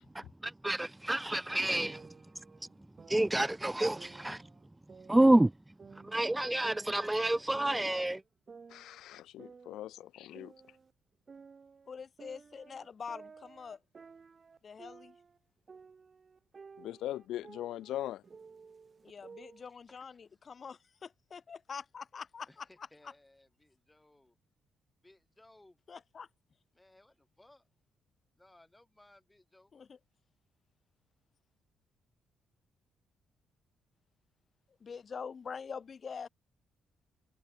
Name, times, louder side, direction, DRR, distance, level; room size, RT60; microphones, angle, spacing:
voice 1, 0.1-2.1 3.1-4.4 5.1-5.5 6.0-8.2, right 1 dB, 10° right, 0.5 m, -28 dB
sound 1, 1.9-3.5 4.0-5.5 5.8-8.1 8.5-10.9 11.3-15.4 15.7-19.7, right 5 dB, 40° right, 5.6 m, -54 dB
voice 2, 8.7-10.5 16.8-18.2, left 13 dB, 80° left, 0.9 m, -40 dB
voice 3, 11.9-13.8 14.6-15.1 19.0-22.5 23.0-23.1 25.9-26.3 29.7-30.0 34.8-36.3, left 6 dB, 45° left, 3.9 m, -45 dB
voice 4, 19.6-20.4 22.5-24.4 25.0-25.8 26.7-27.6 28.4-29.7, left 1 dB, 10° left, 7.8 m, -62 dB
cardioid pair, 90°, 0 cm